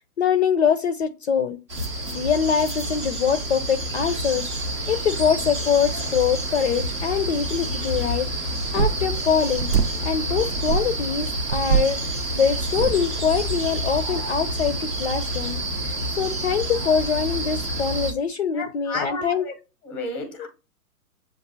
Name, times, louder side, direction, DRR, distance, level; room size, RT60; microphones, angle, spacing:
voice 1, 0.2-1.6 2.1-4.5 4.9-8.3 8.7-9.7 10.0-19.5 20.4-20.5, left 7 dB, 45° left, 0.5 m, -24 dB
sound 1, 1.7-18.1, right 1 dB, 20° right, 0.5 m, -28 dB
sound 2, 8.5-13.9, right 7 dB, 75° right, 0.7 m, -27 dB
voice 2, 18.5-19.5 19.8-20.5, left 3 dB, ahead, 0.8 m, -32 dB
7.1 x 2.5 x 2.6 m
figure-of-eight pair, 130°, 46 cm